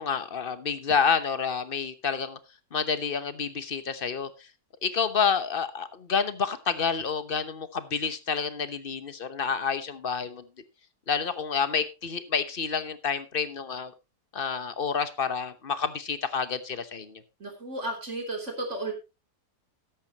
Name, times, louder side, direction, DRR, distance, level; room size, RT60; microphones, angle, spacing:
voice 1, 0.0-2.4 2.7-4.3 4.8-10.4 11.1-13.9 14.3-17.2, left 6 dB, 40° left, 12 dB, 1.0 m, -29 dB
voice 2, 17.4-18.9, right 2 dB, 45° right, 2 dB, 3.6 m, -33 dB
13.5 x 10.5 x 2.9 m, 0.26 s
omnidirectional pair, 1.7 m